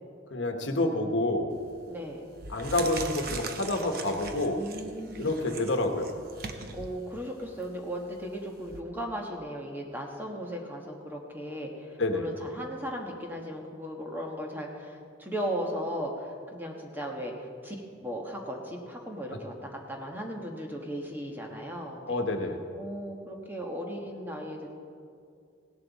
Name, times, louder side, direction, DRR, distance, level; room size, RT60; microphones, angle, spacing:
voice 1, 0.3-1.5 2.5-4.7 5.2-6.1 12.0-12.3 22.1-22.6, left 2 dB, 75° left, 5 dB, 1.2 m, -28 dB
sound 1, 1.5-1.8 2.3-8.8, right 4 dB, 50° right, 0.9 m, -41 dB
voice 2, 1.9-2.2 4.4-5.4 6.7-22.2 22.7-24.7, equal, 10° right, 0 dB, 1.3 m, -37 dB
17.0 x 11.0 x 4.1 m, 2.4 s
head